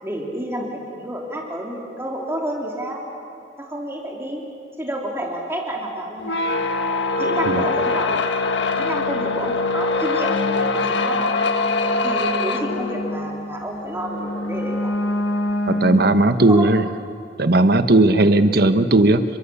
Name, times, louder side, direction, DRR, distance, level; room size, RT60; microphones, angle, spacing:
voice 1, 0.0-3.0 3.6-4.4 4.8-6.4 7.2-8.2 8.7-11.2 12.0-14.9 16.4-16.7, right 1 dB, 15° right, -1 dB, 3.4 m, -29 dB
sound 1, 6.2-16.5, left 2 dB, 80° left, 1.5 m, -23 dB
voice 2, 15.7-16.8 17.4-19.2, right 2 dB, 60° right, 10 dB, 1.2 m, -16 dB
30.0 x 24.0 x 7.1 m, 2.7 s
head